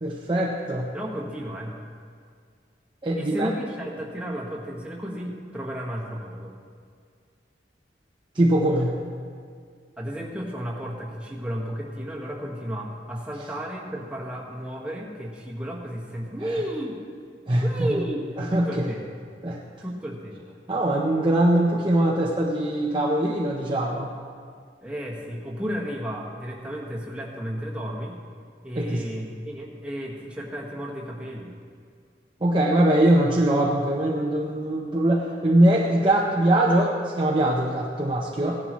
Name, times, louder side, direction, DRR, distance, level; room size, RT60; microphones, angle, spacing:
voice 1, 0.0-0.9 3.0-3.5 8.3-8.9 17.5-18.0 18.5-18.9 19.4-19.6 20.7-24.1 28.8-29.0 32.4-38.6, right 1 dB, 25° right, -3 dB, 0.8 m, -22 dB
voice 2, 0.9-1.7 3.1-6.5 10.0-17.0 17.6-18.2 18.5-19.1 19.8-20.5 24.8-28.2 28.6-31.5, equal, 5° right, -4 dB, 1.5 m, -33 dB
16.5 x 11.0 x 3.1 m, 2.1 s
head